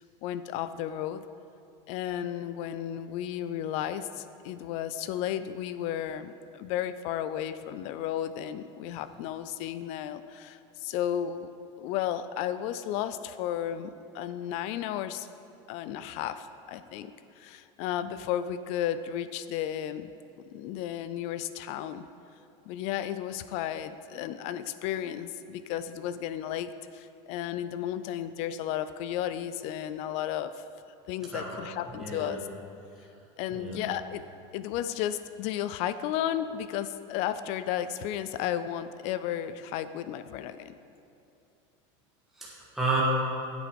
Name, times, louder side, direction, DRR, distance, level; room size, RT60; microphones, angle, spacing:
voice 1, 0.2-1.3 1.9-11.5 11.8-15.3 15.7-20.1 20.5-22.0 22.7-30.6 31.1-32.5 33.4-34.2 34.5-40.7, left 10 dB, 45° left, 12 dB, 0.3 m, -33 dB
voice 2, 31.3-31.7 31.9-32.4 33.5-33.8 42.4-43.0, right 3 dB, ahead, -7 dB, 1.4 m, -32 dB
9.6 x 8.3 x 5.2 m, 2.6 s
supercardioid pair, 170°, 16 cm